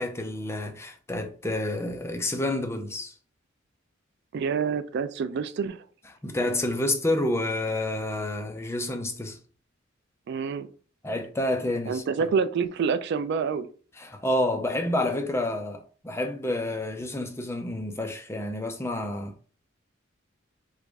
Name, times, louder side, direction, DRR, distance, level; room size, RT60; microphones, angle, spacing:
voice 1, 0.0-3.1 6.2-9.4 11.0-12.0 14.0-19.3, left 1 dB, 15° left, 0.5 m, -29 dB
voice 2, 4.3-5.8 10.3-10.7 11.9-13.7, right 6 dB, 60° right, 0.3 m, -27 dB
3.1 x 2.5 x 3.4 m
head